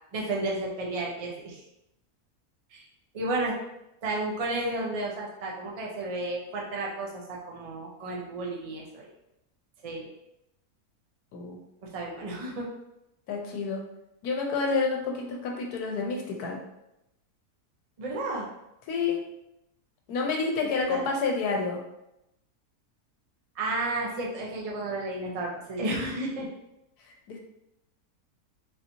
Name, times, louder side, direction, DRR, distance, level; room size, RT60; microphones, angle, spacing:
voice 1, 0.1-1.6 2.7-2.8 3.1-3.6 4.0-9.1 9.8-10.1 11.8-12.7 18.0-18.5 20.9-21.0 23.6-26.5, right 2 dB, 65° right, -2 dB, 0.3 m, -32 dB
voice 2, 13.3-13.8 14.2-16.6 18.9-19.2 20.1-21.8 27.3-27.4, left 4 dB, 85° left, 1 dB, 1.2 m, -29 dB
4.0 x 2.8 x 2.6 m, 0.87 s
omnidirectional pair, 1.6 m